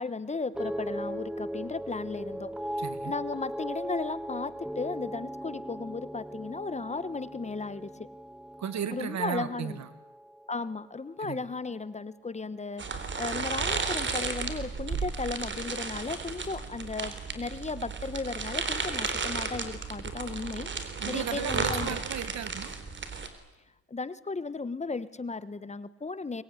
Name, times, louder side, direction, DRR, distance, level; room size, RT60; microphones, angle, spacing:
voice 1, 0.0-8.1 8.9-9.8 10.5-22.0 23.9-26.4, left 4 dB, 25° left, 16 dB, 1.2 m, -35 dB
sound 1, 0.5-10.9 11.2-11.8, equal, 5° right, 0.9 m, -38 dB
voice 2, 2.8-3.1 8.6-9.9 11.2-11.5 21.0-22.7, right 9 dB, 65° right, 13 dB, 2.0 m, -35 dB
sound 2, 12.8-23.3, right 4 dB, 40° right, 3.8 m, -34 dB
23.5 x 21.0 x 10.0 m, 1.0 s
cardioid pair, 90°, 30 cm